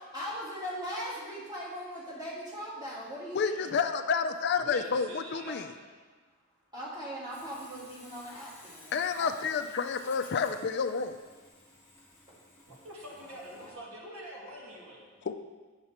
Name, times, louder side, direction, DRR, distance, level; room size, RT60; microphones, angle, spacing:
voice 1, 0.0-3.7 6.7-9.6 12.3-12.4 13.2-13.8, equal, 20° right, -7 dB, 2.4 m, -40 dB
voice 2, 3.3-5.7 8.9-11.2 15.3-15.4, left 5 dB, 50° left, 8 dB, 0.4 m, -29 dB
voice 3, 4.6-5.9 12.8-15.1, right 1 dB, 70° right, -3 dB, 2.0 m, -45 dB
Sawing, 7.3-13.7, left 2 dB, 10° left, 1.9 m, -55 dB
9.2 x 6.7 x 4.3 m, 1.4 s
head